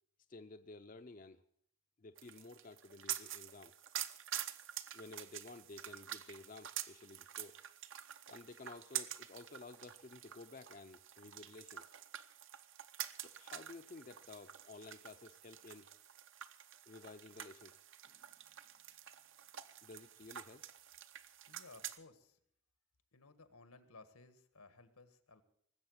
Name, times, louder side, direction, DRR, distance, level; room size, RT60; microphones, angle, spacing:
voice 1, 0.3-1.4 2.0-3.8 4.9-7.6 8.3-11.9 13.2-15.9 16.9-17.8 19.8-20.7, left 3 dB, 35° left, 8 dB, 0.5 m, -53 dB
sound 1, 2.2-22.0, right 11 dB, 55° right, 0.8 m, -48 dB
voice 2, 21.5-22.4 23.1-25.4, left 3 dB, 85° left, 10 dB, 1.6 m, -59 dB
19.5 x 7.9 x 7.9 m, 0.67 s
head